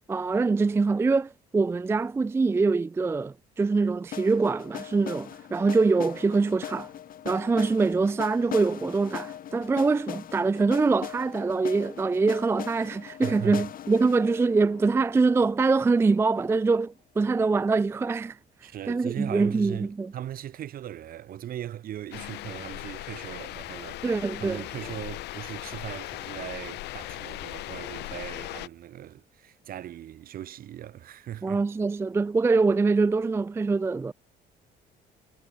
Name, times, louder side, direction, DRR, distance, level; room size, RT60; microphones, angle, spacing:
voice 1, 0.1-6.9 7.2-18.4 18.9-20.1 24.0-24.6 31.4-34.1, right 4 dB, 15° right, 0.4 m, -24 dB
sound 1, 4.1-16.0, left 10 dB, 55° left, 6.0 m, -40 dB
voice 2, 13.2-13.7 18.6-24.1 24.4-31.6, right 11 dB, 60° right, 2.5 m, -39 dB
sound 2, 22.1-28.7, left 18 dB, 85° left, 3.8 m, -38 dB
cardioid pair, 110°, 17 cm